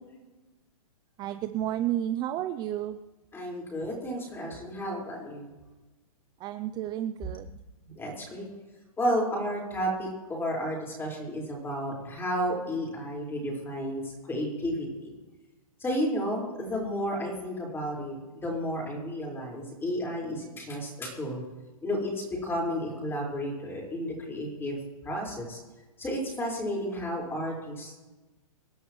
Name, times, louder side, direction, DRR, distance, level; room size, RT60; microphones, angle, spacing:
voice 1, 1.2-3.0 6.4-7.6, right 12 dB, 20° right, 10 dB, 0.5 m, -31 dB
voice 2, 3.3-5.5 7.2-7.3 7.9-8.5 9.0-15.1 15.8-21.4 21.8-24.8 25.0-25.6 26.0-28.1, equal, 10° left, -2 dB, 5.1 m, -32 dB
26.5 x 11.5 x 3.2 m, 1.2 s
hypercardioid pair, 135°, 19 cm